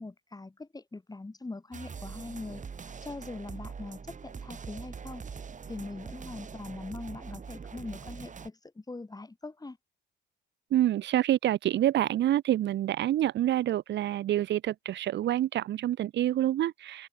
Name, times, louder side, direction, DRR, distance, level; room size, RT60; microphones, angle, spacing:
voice 1, 0.0-2.6 3.0-5.2 5.7-9.8, left 3 dB, 20° left, 6.0 m, -42 dB
sound 1, 1.7-8.5, right 6 dB, 40° right, 3.1 m, -43 dB
voice 2, 10.7-17.1, right 12 dB, 65° right, 0.6 m, -27 dB
cardioid pair, 90°, 20 cm